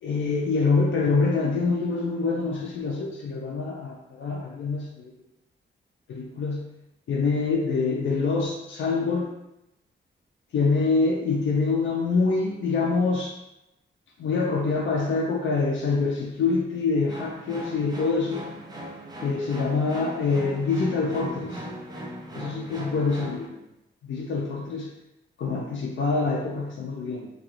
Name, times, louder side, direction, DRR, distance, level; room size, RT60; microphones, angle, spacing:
voice 1, 0.0-5.1 6.1-6.7 7.1-9.3 10.5-13.3 14.2-18.4 19.2-21.6 22.3-23.6 24.1-24.9 25.4-27.3, left 4 dB, 75° left, -2 dB, 0.4 m, -25 dB
sound 1, 17.1-23.5, equal, 20° right, 0.3 m, -38 dB
3.0 x 2.3 x 2.4 m, 0.89 s
wide cardioid pair, 155°, 20 cm